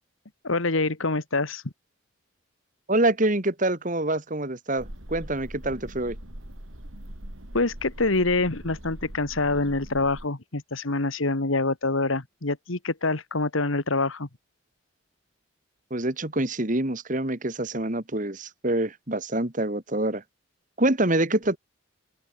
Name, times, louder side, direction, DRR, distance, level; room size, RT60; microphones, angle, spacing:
voice 1, 0.4-1.6 7.5-14.3, left 3 dB, 85° left, 1.9 m, -26 dB
voice 2, 2.9-6.2 15.9-20.2 20.8-21.6, right 1 dB, 40° right, 2.3 m, -26 dB
sound 1, 4.8-10.3, right 1 dB, 85° right, 4.6 m, -41 dB
open air
head